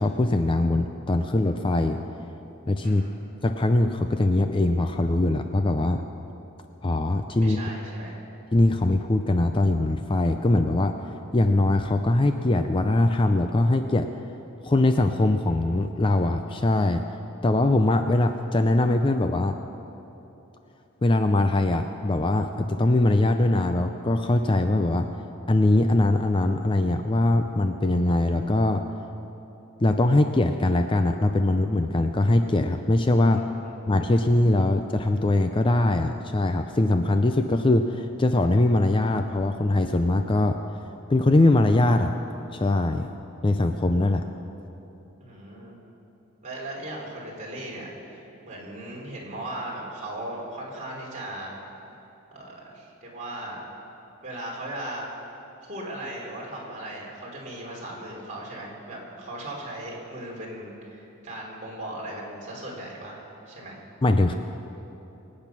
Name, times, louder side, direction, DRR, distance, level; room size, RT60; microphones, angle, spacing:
voice 1, 0.0-2.0 2.7-3.0 3.4-6.0 6.8-7.6 8.5-10.9 11.3-14.1 14.6-17.0 17.4-19.6 21.0-25.1 25.5-28.8 29.8-33.4 33.9-40.6 41.1-42.1 42.5-43.1 43.4-44.2 64.0-64.3, left 2 dB, 25° left, 7 dB, 0.4 m, -22 dB
voice 2, 2.8-3.2 7.4-8.2 33.2-33.6 45.2-45.7 46.4-51.6 52.3-53.6 54.2-55.1 55.6-63.8, right 1 dB, 35° right, -3 dB, 3.3 m, -37 dB
23.5 x 8.8 x 6.1 m, 3.0 s
head